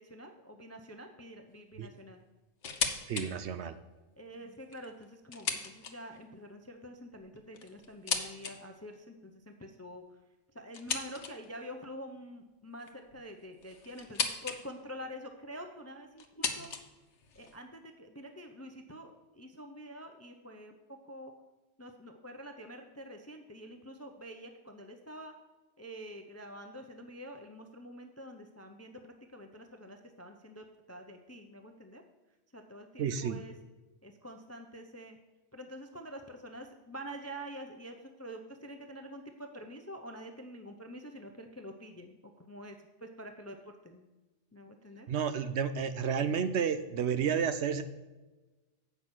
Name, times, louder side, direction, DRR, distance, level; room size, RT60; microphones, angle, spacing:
voice 1, 0.0-2.2 4.2-10.0 10.5-16.7 17.3-21.3 21.8-25.3 25.8-32.0 32.5-33.5 34.0-35.2 35.5-44.1 44.5-45.1, equal, 20° left, 5 dB, 0.4 m, -47 dB
sound 1, 2.6-3.3 3.7-3.8 4.5-6.2 7.2-8.6 10.7-11.6 12.8-14.6 14.9-15.4 16.2-17.6, left 6 dB, 65° left, 1.2 m, -37 dB
voice 2, 3.1-3.8 33.0-33.4 45.1-47.8, right 7 dB, 65° right, 11 dB, 0.8 m, -31 dB
8.4 x 5.6 x 6.0 m, 1.2 s
omnidirectional pair, 1.3 m